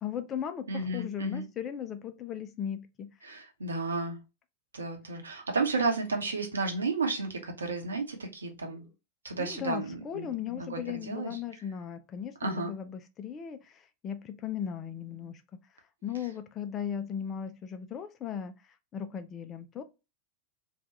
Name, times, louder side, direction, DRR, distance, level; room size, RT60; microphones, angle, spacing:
voice 1, 0.0-3.1 9.4-15.4 16.0-18.6 18.9-19.8, left 9 dB, 25° left, 0.4 m, -37 dB
voice 2, 0.7-1.5 3.2-4.2 4.7-8.8 9.2-11.4 12.4-12.7, right 3 dB, 75° right, 0.8 m, -32 dB
2.8 x 2.3 x 2.8 m
figure-of-eight pair, 90°, 0 cm